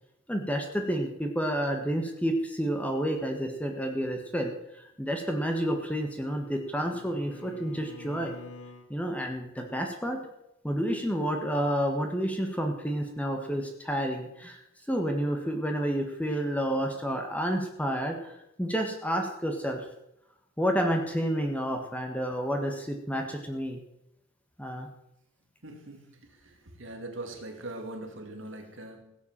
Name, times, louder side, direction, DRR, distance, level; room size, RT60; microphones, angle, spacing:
voice 1, 0.3-4.5 5.0-8.3 8.9-10.3 10.6-14.6 14.9-18.3 18.6-19.8 20.6-23.8 24.6-24.9, equal, 5° left, 3 dB, 1.6 m, -30 dB
Bowed string instrument, 5.8-8.9, left 2 dB, 80° left, 2.2 m, -48 dB
voice 2, 25.6-29.2, right 2 dB, 60° right, 4 dB, 2.5 m, -42 dB
16.5 x 8.1 x 7.5 m, 0.81 s
head